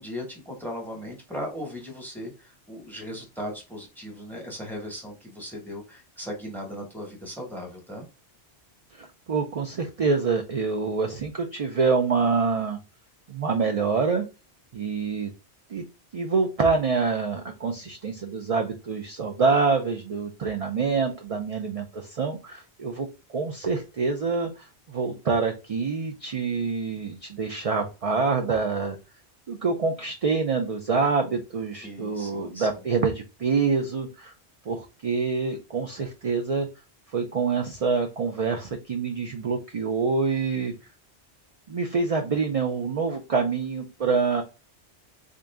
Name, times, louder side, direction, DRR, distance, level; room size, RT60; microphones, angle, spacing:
voice 1, 0.0-8.0 31.8-32.7, equal, ahead, 0 dB, 1.1 m, -37 dB
voice 2, 8.9-12.8 13.3-14.3 14.7-15.3 15.7-15.8 16.1-29.0 29.5-34.3 34.7-36.7 37.1-40.7 41.7-44.4, right 4 dB, 45° right, 3 dB, 0.4 m, -26 dB
3.7 x 2.6 x 3.3 m, 0.30 s
omnidirectional pair, 1.2 m